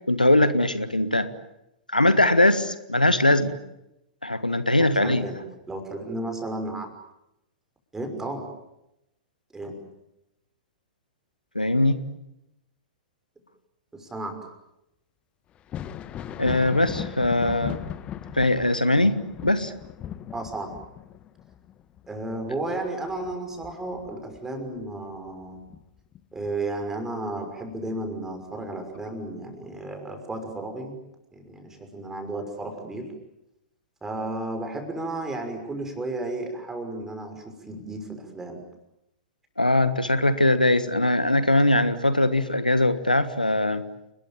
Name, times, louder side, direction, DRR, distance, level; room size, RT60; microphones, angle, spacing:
voice 1, 0.1-1.3 1.9-3.5 4.2-5.3 11.5-12.0 16.4-17.8 18.3-19.7 39.6-43.8, left 1 dB, 85° left, 13 dB, 1.5 m, -21 dB
voice 2, 4.8-5.4 5.7-6.9 7.9-8.5 9.5-9.8 13.9-14.4 20.3-20.7 22.1-25.6 26.3-31.0 31.3-33.1 34.0-38.6, right 2 dB, 10° right, 5 dB, 5.9 m, -33 dB
Thunder, 15.5-24.9 25.3-26.5 28.0-28.1 28.9-29.1, left 10 dB, 25° left, 1.2 m, -38 dB
30.0 x 21.5 x 8.9 m, 0.87 s
figure-of-eight pair, 100°, 4 cm